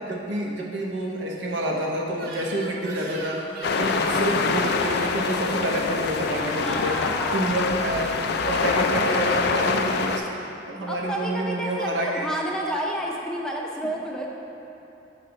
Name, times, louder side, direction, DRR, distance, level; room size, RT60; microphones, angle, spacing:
voice 1, 0.0-3.4 3.8-7.0 7.3-8.1 8.4-10.2 10.7-12.3, right 1 dB, 85° right, -1 dB, 0.8 m, -28 dB
Crying sobbing / Screech, 2.1-4.3 6.2-6.6 7.2-8.2, right 2 dB, 55° right, 0.7 m, -40 dB
sound 1, 3.6-10.2, left 4 dB, 60° left, 0.3 m, -25 dB
voice 2, 6.5-7.5 8.9-9.7 10.9-14.3, right 1 dB, 5° left, -2 dB, 0.5 m, -31 dB
5.9 x 4.1 x 5.1 m, 2.9 s
head